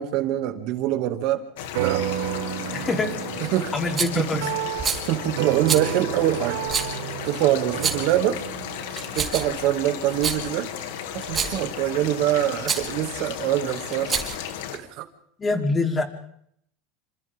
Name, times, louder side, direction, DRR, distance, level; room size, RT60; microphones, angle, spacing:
voice 1, 0.0-1.4 1.8-2.0 3.5-3.7 4.2-4.5 5.1-6.6 7.2-8.4 9.1-10.7 11.1-14.2 14.7-15.1, right 13 dB, 60° right, 7 dB, 2.3 m, -24 dB
sound 1, 1.6-14.8, left 9 dB, 80° left, 2.5 m, -34 dB
sound 2, 1.7-10.5, right 13 dB, 85° right, 1.6 m, -32 dB
voice 2, 2.7-3.2 3.7-4.5 15.4-16.0, left 3 dB, 20° left, 4 dB, 3.5 m, -25 dB
Rattle, 4.0-4.2 4.8-5.1 5.7-5.9 6.7-6.9 7.7-8.2 8.9-9.6 10.1-10.4 11.2-11.6 12.6-12.9 13.9-14.5, right 6 dB, 25° right, 3.9 m, -27 dB
28.0 x 26.5 x 3.7 m, 0.68 s
supercardioid pair, 130°, 0 cm